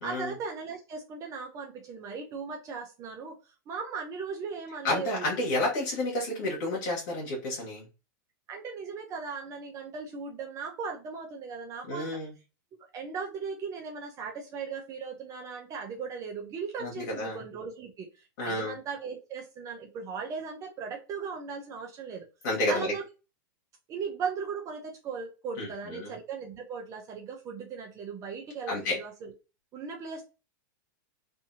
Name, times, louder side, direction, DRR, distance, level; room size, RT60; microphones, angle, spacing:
voice 1, 0.0-5.3 8.5-12.2 12.9-22.3 22.7-23.0 23.9-29.3 29.7-30.2, right 5 dB, 30° right, 2 dB, 0.6 m, -38 dB
voice 2, 4.8-7.8 11.9-12.3 16.8-17.4 18.4-18.7 22.4-22.9 25.6-26.1 28.7-29.0, left 1 dB, 65° left, -3 dB, 1.3 m, -30 dB
2.7 x 2.6 x 2.6 m, 0.30 s
hypercardioid pair, 130°, 11 cm